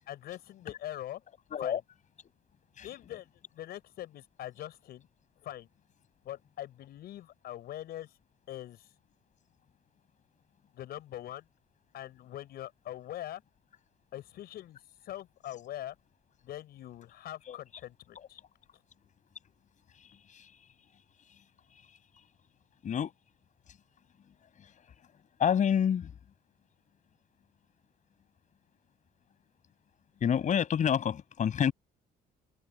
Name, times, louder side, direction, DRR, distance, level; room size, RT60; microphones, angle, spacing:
voice 1, 0.1-1.2 1.6-1.8 2.8-5.1 5.4-5.7 6.2-8.1 8.5-8.9 10.7-11.4 11.9-13.4 14.1-16.0 16.4-18.4, left 13 dB, 70° left, 6.6 m, -43 dB
voice 2, 25.4-26.1 30.2-31.7, left 8 dB, 45° left, 7.1 m, -28 dB
cardioid pair, 110°, 17 cm